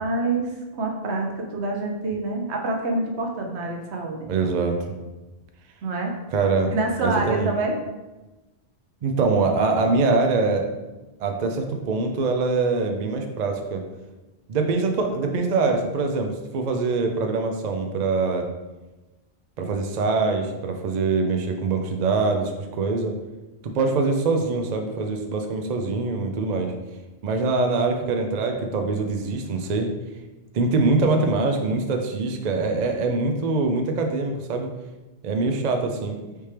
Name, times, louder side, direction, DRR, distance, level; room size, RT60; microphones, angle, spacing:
voice 1, 0.0-4.3 5.8-6.1 6.7-7.8, right 2 dB, 80° right, 1 dB, 1.0 m, -26 dB
voice 2, 4.3-5.0 6.3-6.7 7.0-7.5 9.0-10.6 11.2-13.8 14.5-18.5 19.6-23.1 23.7-26.7 27.2-29.9 30.5-34.7 35.2-36.2, right 3 dB, 55° right, 4 dB, 0.5 m, -23 dB
4.3 x 3.4 x 3.3 m, 1.1 s
omnidirectional pair, 1.1 m